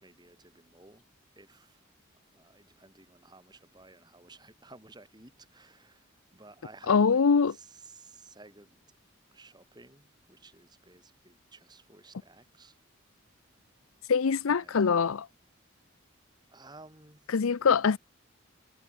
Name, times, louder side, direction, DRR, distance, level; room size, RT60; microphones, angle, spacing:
voice 1, 0.0-1.0 1.4-1.8 2.3-7.2 7.5-8.8 9.3-12.8 14.5-15.1 16.5-17.3, right 3 dB, 20° right, 4.2 m, -54 dB
voice 2, 6.9-7.5 14.1-15.3 17.3-18.0, left 5 dB, 85° left, 0.6 m, -23 dB
head